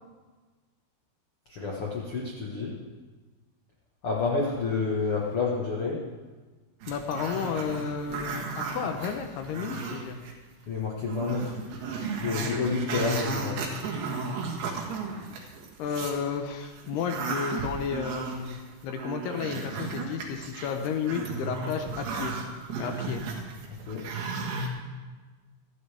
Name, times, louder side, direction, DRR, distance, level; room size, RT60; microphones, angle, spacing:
voice 1, 1.5-2.7 4.0-6.0 10.7-11.5 12.2-13.7 23.9-24.0, left 4 dB, 60° left, -3 dB, 1.4 m, -29 dB
Growling, 6.8-10.3 10.7-10.8 11.1-16.2 16.6-24.7, right 4 dB, 70° right, 3.5 m, -35 dB
voice 2, 6.9-10.2 15.8-22.4 22.8-23.2, left 6 dB, 75° left, 5 dB, 2.8 m, -32 dB
25.5 x 9.6 x 3.5 m, 1.3 s
omnidirectional pair, 4.9 m